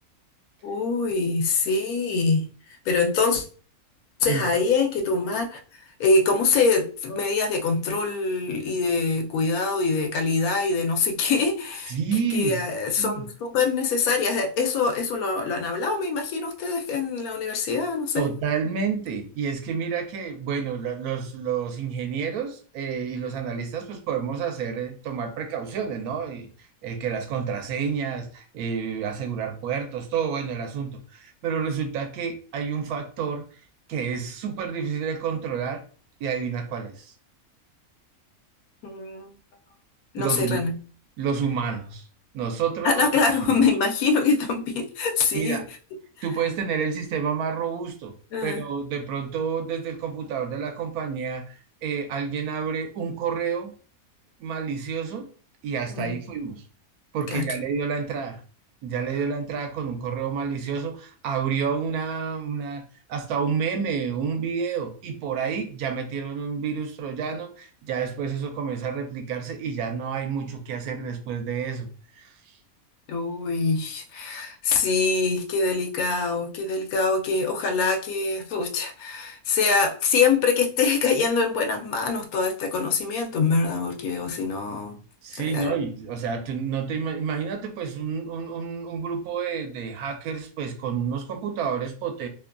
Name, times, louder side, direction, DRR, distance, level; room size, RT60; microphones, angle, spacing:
voice 1, 0.6-2.5 2.9-3.4 4.2-5.6 6.0-12.0 12.3-18.2 38.8-39.3 40.1-40.7 42.8-45.6 48.3-48.6 55.9-56.1 57.3-57.4 73.1-85.0 85.4-85.8, left 4 dB, 85° left, 3 dB, 1.1 m, -24 dB
voice 2, 11.9-12.6 13.0-13.2 18.2-26.5 26.8-33.4 33.9-35.8 36.2-37.1 40.2-40.7 41.2-42.0 42.3-43.6 45.3-45.7 46.2-48.2 48.4-53.8 54.4-55.3 55.6-56.6 57.1-58.4 58.8-62.8 63.1-71.9 72.2-72.4 85.2-92.3, right 6 dB, 85° right, 6 dB, 1.1 m, -29 dB
2.8 x 2.2 x 2.4 m, 0.40 s
omnidirectional pair, 1.5 m